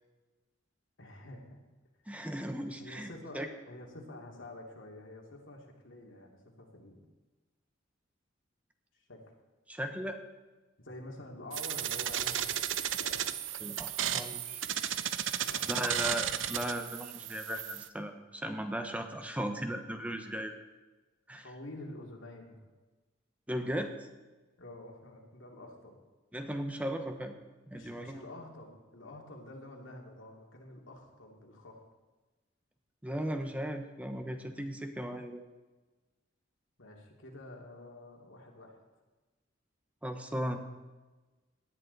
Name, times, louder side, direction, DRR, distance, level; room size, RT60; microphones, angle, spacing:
voice 1, 1.0-1.6 2.8-7.0 9.0-9.2 10.8-12.7 13.0-13.2 15.3-15.9 19.9-20.0 21.4-22.6 24.6-26.0 27.7-31.8 36.8-38.8, left 1 dB, 90° left, 0 dB, 2.5 m, -48 dB
voice 2, 2.1-3.1 3.3-3.5 9.7-10.2 13.6-14.6 15.7-20.5 21.3-21.4 23.5-23.9 26.3-27.3 27.7-28.2 33.0-35.4 40.0-40.6, equal, 5° right, 6 dB, 0.9 m, -36 dB
sound 1, 11.5-17.9, right 10 dB, 80° right, 0.7 m, -34 dB
18.0 x 10.5 x 4.0 m, 1.2 s
head